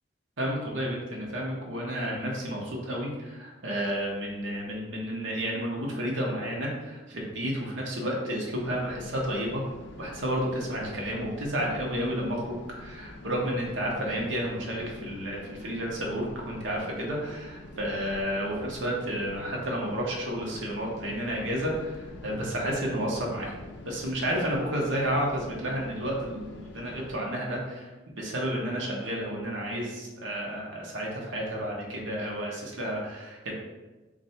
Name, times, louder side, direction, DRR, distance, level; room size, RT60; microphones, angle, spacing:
voice 1, 0.4-9.6 10.0-23.5 23.8-33.5, equal, 80° right, -2 dB, 0.9 m, -31 dB
sound 1, 8.6-27.2, left 2 dB, 60° left, 0.4 m, -46 dB
3.3 x 2.5 x 4.1 m, 1.2 s
head